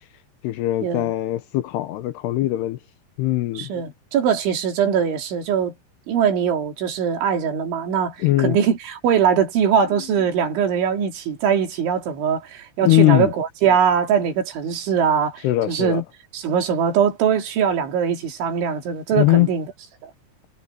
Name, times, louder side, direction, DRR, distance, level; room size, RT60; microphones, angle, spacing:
voice 1, 0.4-2.8 3.2-3.7 8.2-8.6 12.8-13.3 15.4-16.0 19.1-19.5, left 16 dB, 75° left, 2.6 m, -20 dB
voice 2, 3.6-5.7 6.1-16.0 16.3-19.7 20.0-20.1, right 7 dB, 75° right, 5.5 m, -21 dB
omnidirectional pair, 5.5 m